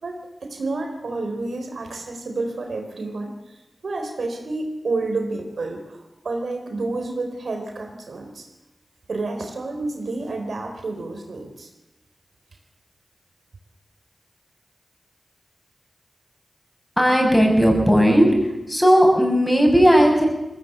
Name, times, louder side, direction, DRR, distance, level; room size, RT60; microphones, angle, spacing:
voice 1, 0.0-8.5 9.1-11.7, right 3 dB, 80° right, 4 dB, 3.9 m, -30 dB
voice 2, 17.0-18.3 18.7-20.3, equal, 15° left, 2 dB, 6.8 m, -16 dB
20.5 x 16.5 x 9.2 m, 0.97 s
cardioid pair, 55°, 0 cm